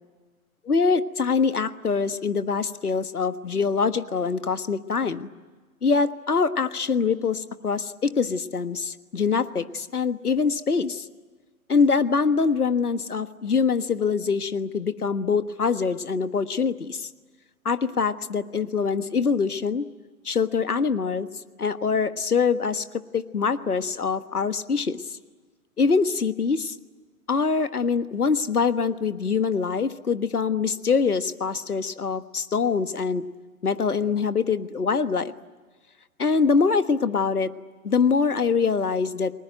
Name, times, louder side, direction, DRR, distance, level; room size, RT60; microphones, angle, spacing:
voice 1, 0.6-5.3 5.8-11.0 11.7-17.1 17.6-19.9 20.2-21.3 21.6-22.8 23.1-25.0 25.8-26.7 27.3-33.2 33.6-35.3 36.2-37.5 37.8-39.3, left 5 dB, 85° left, 12 dB, 1.5 m, -24 dB
30.0 x 20.5 x 9.0 m, 1.4 s
figure-of-eight pair, 120°, 44 cm